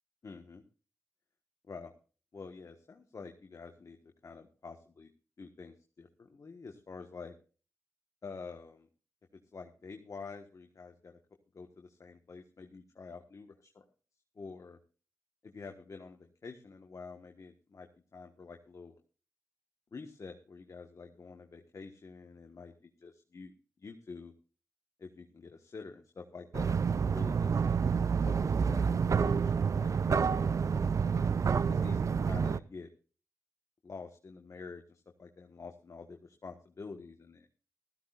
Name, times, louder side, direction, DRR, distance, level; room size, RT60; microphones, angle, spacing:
voice 1, 0.2-0.6 1.6-1.9 2.3-5.1 5.4-7.3 8.2-8.9 9.3-11.2 11.5-13.9 14.3-14.8 15.4-19.0 19.9-23.5 23.8-24.3 25.0-26.8 27.0-27.6 28.2-30.6 31.0-31.3 31.7-32.9 33.8-37.5, left 4 dB, 55° left, 4 dB, 1.4 m, -48 dB
sound 1, 26.5-32.6, right 6 dB, 55° right, 0.5 m, -28 dB
16.0 x 14.0 x 2.5 m, 0.36 s
cardioid pair, 50°, 6 cm